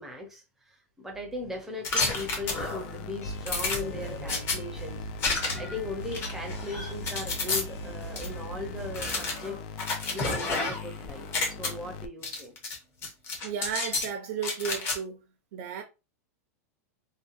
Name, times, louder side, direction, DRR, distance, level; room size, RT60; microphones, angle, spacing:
voice 1, 0.0-5.0 5.3-9.6 10.1-12.5, left 2 dB, 5° right, 0.6 m, -38 dB
sound 1, 1.1-1.9 2.3-9.0, right 3 dB, 70° left, 1.2 m, -42 dB
sound 2, 1.8-2.9 3.5-4.6 5.2-5.8 6.1-7.6 8.2-8.3 8.9-10.9 11.2-11.7 12.2-12.8 13.0-14.1 14.4-15.0, left 3 dB, 30° left, 0.8 m, -30 dB
sound 3, 2.1-12.1, left 5 dB, 45° left, 0.4 m, -41 dB
voice 2, 13.4-15.2 15.5-15.8, right 7 dB, 60° right, 0.5 m, -34 dB
2.8 x 2.2 x 2.5 m
supercardioid pair, 150°, 8 cm